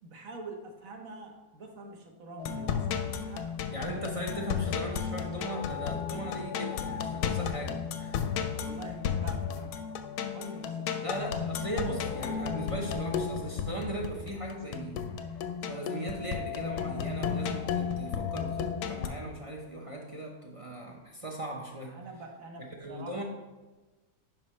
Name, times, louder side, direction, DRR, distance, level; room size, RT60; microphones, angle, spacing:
voice 1, 0.0-3.5 8.5-9.8 10.3-11.2 21.8-23.2, right 2 dB, 60° right, 2 dB, 1.4 m, -45 dB
sound 1, 2.4-19.1, left 7 dB, 90° left, 1.2 m, -33 dB
voice 2, 3.7-8.2 11.0-15.1 15.6-22.0 22.8-23.2, right 1 dB, 35° right, 0 dB, 0.5 m, -38 dB
9.1 x 5.4 x 3.1 m, 1.2 s
omnidirectional pair, 1.6 m